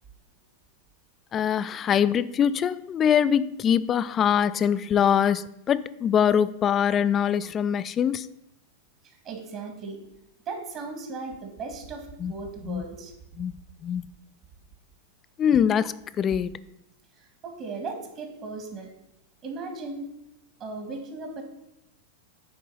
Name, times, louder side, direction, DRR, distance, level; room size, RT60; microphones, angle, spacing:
voice 1, 1.3-8.3 12.2-12.3 12.7-12.8 13.4-13.6 13.8-14.1 15.4-16.5, left 8 dB, 30° left, 0.4 m, -23 dB
voice 2, 9.0-10.0 10.5-13.1 17.1-18.9 19.4-20.1 20.6-21.4, right 3 dB, 40° right, 1.8 m, -37 dB
9.2 x 3.7 x 5.6 m
hypercardioid pair, 100°, 0 cm